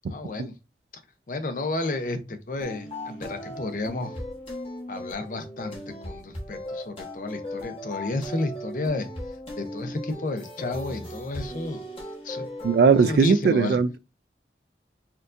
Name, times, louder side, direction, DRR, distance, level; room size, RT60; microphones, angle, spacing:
voice 1, 0.1-0.5 1.3-4.2 4.9-9.1 9.6-11.8 12.2-12.5 13.0-13.8, left 2 dB, 50° left, 0.6 m, -31 dB
sound 1, 2.6-13.2, left 1 dB, 30° left, 1.0 m, -37 dB
voice 2, 12.6-14.0, right 5 dB, 60° right, 0.3 m, -19 dB
4.4 x 2.6 x 2.4 m
head